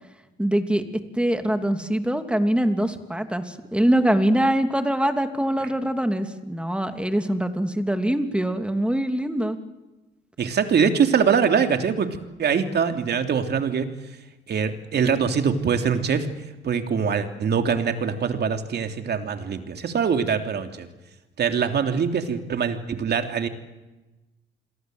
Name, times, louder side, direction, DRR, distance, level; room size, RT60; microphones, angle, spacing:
voice 1, 0.4-0.8 1.1-9.6, right 1 dB, 5° right, 7 dB, 2.9 m, -23 dB
voice 2, 10.4-12.1 12.4-13.9 14.5-16.3 16.6-20.9 21.4-23.5, right 6 dB, 55° right, 6 dB, 3.1 m, -23 dB
29.0 x 22.5 x 8.0 m, 1.1 s
cardioid pair, 90°, 20 cm